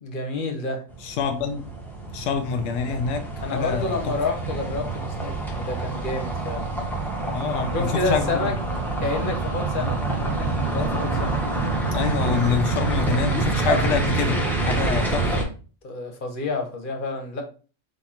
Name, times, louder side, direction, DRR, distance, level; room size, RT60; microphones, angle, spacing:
voice 1, 0.0-0.8 3.4-6.7 7.7-8.5 9.0-11.4 15.8-17.4, left 3 dB, 45° left, 4 dB, 1.1 m, -29 dB
sound 1, 0.9-15.4, right 3 dB, ahead, 0.8 m, -26 dB
voice 2, 1.0-1.6 2.1-4.2 7.3-8.5 10.8-10.9 11.9-14.4 14.7-15.3, left 6 dB, 85° left, 5 dB, 1.0 m, -26 dB
4.1 x 2.8 x 4.3 m, 0.37 s
omnidirectional pair, 1.3 m